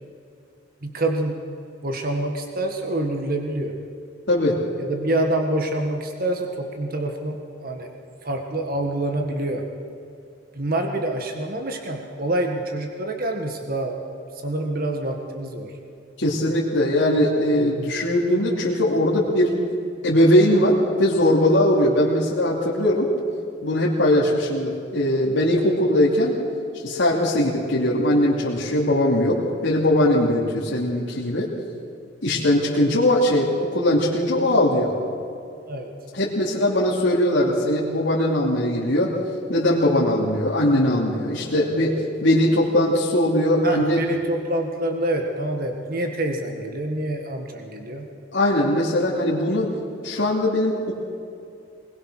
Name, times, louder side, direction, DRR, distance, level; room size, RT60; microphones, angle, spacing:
voice 1, 0.8-1.4 1.8-3.8 4.8-7.9 8.2-9.7 10.5-14.0 14.4-15.7 32.3-32.4 35.7-35.9 41.5-42.0 43.6-48.1, right 1 dB, 50° right, 3 dB, 1.7 m, -26 dB
voice 2, 4.3-4.6 16.2-19.5 20.0-23.1 23.6-26.4 26.8-31.5 32.2-34.9 36.1-39.1 39.5-44.0 48.3-49.7 50.0-50.9, left 1 dB, 75° left, -6 dB, 2.9 m, -20 dB
21.0 x 20.5 x 6.4 m, 2.6 s
head